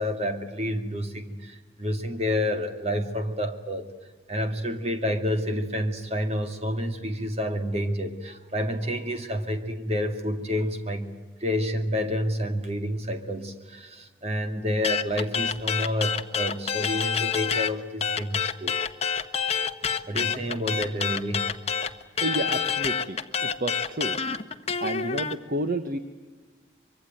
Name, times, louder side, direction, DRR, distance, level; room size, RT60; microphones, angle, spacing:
voice 1, 0.0-3.9 4.3-11.1 11.4-18.8 20.1-21.6, equal, 35° right, 6 dB, 2.3 m, -29 dB
sound 1, 14.8-17.7 18.0-25.3, left 6 dB, 35° left, 1.1 m, -27 dB
voice 2, 22.2-24.2 24.8-26.0, right 1 dB, 50° right, 9 dB, 1.1 m, -30 dB
24.5 x 24.0 x 9.2 m, 1.3 s
head